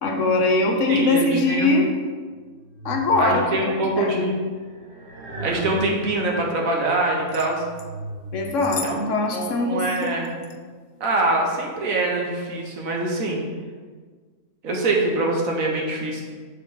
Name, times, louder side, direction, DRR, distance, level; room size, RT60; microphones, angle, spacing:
voice 1, 0.0-1.9 2.8-4.1 8.3-10.2, left 2 dB, 60° left, 2 dB, 1.2 m, -22 dB
voice 2, 0.9-1.8 3.2-4.4 5.4-7.6 8.8-8.9 9.3-10.4 11.0-13.4 14.6-16.2, right 2 dB, 70° right, 0 dB, 1.6 m, -24 dB
sound 1, 2.3-3.7 4.6-6.4 7.1-8.5, right 2 dB, 50° right, 1.5 m, -37 dB
sound 2, 7.3-7.9 8.5-9.0 9.2-9.3 10.0-10.6 11.4-11.7 12.2-12.4, left 5 dB, 80° left, 0.4 m, -37 dB
6.5 x 5.1 x 4.9 m, 1.5 s
omnidirectional pair, 1.5 m